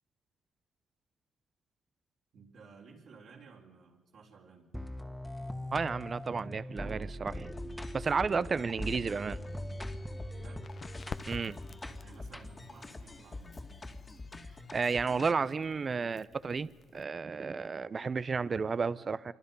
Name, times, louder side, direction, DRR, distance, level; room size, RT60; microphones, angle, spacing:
voice 1, 2.3-4.7 10.3-10.7 12.0-13.7, right 4 dB, 65° right, -2 dB, 4.0 m, -55 dB
sound 1, 4.7-12.8, equal, ahead, 1.7 m, -42 dB
voice 2, 5.7-7.5 7.9-9.4 11.3-11.6 14.7-19.3, right 5 dB, 35° right, 17 dB, 0.7 m, -32 dB
sound 2, 7.3-15.3, left 2 dB, 25° left, 2.3 m, -46 dB
Crackle, 10.3-17.0, left 6 dB, 45° left, 0.9 m, -51 dB
26.5 x 24.5 x 5.5 m, 1.2 s
cardioid pair, 90°, 0 cm